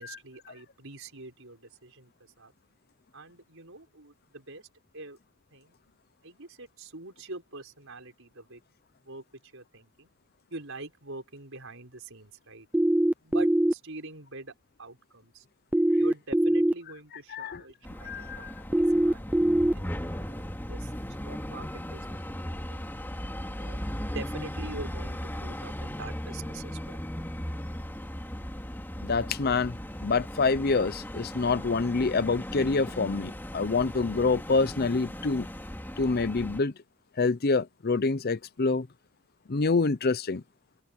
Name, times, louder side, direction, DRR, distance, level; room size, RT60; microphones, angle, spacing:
voice 1, 0.0-2.5 3.1-4.7 4.9-5.2 5.5-5.7 6.2-8.6 9.0-9.2 9.5-10.1 10.5-12.7 13.2-14.5 14.8-15.4 15.9-19.3 19.7-20.9 21.2-22.2 22.5-23.1 23.6-23.8 24.1-27.0, right 2 dB, 60° right, 6.1 m, -44 dB
sound 1, 12.7-13.7 15.7-16.7 18.7-19.7, right 1 dB, 5° right, 0.5 m, -22 dB
voice 2, 17.3-17.6 18.0-18.5 29.0-29.8 30.0-35.5 36.0-36.7 37.2-38.9 39.5-40.4, left 4 dB, 45° left, 0.7 m, -26 dB
sound 2, 17.8-36.6, equal, 10° left, 2.6 m, -37 dB
open air
head